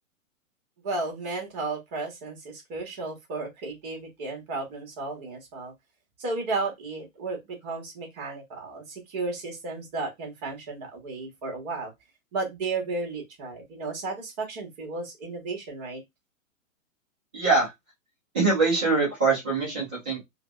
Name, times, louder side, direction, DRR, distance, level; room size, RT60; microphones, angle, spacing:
voice 1, 0.8-5.7 6.2-11.9 12.3-16.0, right 3 dB, 30° right, 1.1 m, -33 dB
voice 2, 17.3-17.7 18.3-20.2, right 3 dB, 10° right, 0.3 m, -23 dB
3.2 x 2.1 x 2.2 m
figure-of-eight pair, 120°, 41 cm